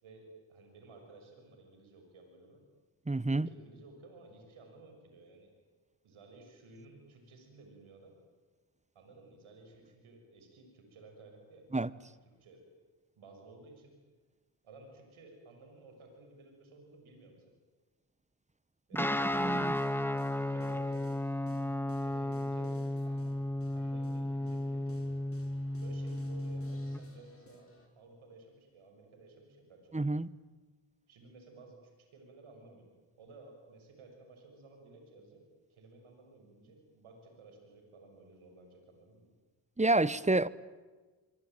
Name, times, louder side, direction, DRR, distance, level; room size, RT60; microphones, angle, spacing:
voice 1, 0.0-2.6 3.3-5.5 6.0-8.2 8.9-11.7 12.0-12.6 13.2-13.9 14.6-17.4 18.9-21.1 21.9-22.7 23.0-23.3 23.7-25.0 25.8-27.7 27.9-30.0 31.1-32.9 33.2-35.4 35.7-39.3, right 3 dB, 80° right, 6.5 m, -55 dB
voice 2, 3.1-3.5 11.7-11.9 19.0-19.1 19.3-19.7 29.9-30.3 39.8-40.5, right 2 dB, 15° right, 1.1 m, -28 dB
Guitar, 18.9-27.0, left 1 dB, 5° left, 1.7 m, -34 dB
sound 1, 19.1-27.9, left 2 dB, 30° left, 6.2 m, -59 dB
24.5 x 24.0 x 9.1 m
supercardioid pair, 40°, 48 cm